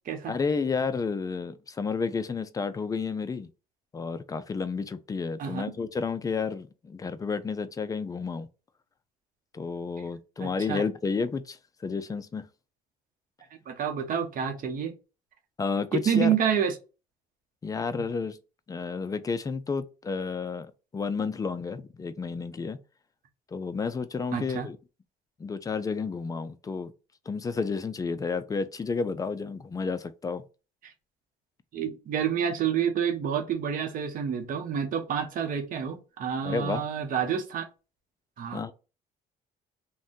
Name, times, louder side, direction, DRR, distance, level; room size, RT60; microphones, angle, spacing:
voice 1, 0.3-3.5 3.9-8.5 9.5-11.6 11.8-12.5 15.6-16.4 17.6-18.4 18.7-22.8 23.5-24.8 25.4-26.9 27.3-30.4 36.4-36.8 38.5-38.7, left 5 dB, 20° left, 0.3 m, -31 dB
voice 2, 5.4-5.7 10.4-10.8 13.7-14.9 15.9-16.7 24.3-24.7 30.8-30.9 31.7-37.7 38.4-38.6, right 8 dB, 55° right, 0.8 m, -28 dB
2.6 x 2.1 x 3.6 m
cardioid pair, 110°, 17 cm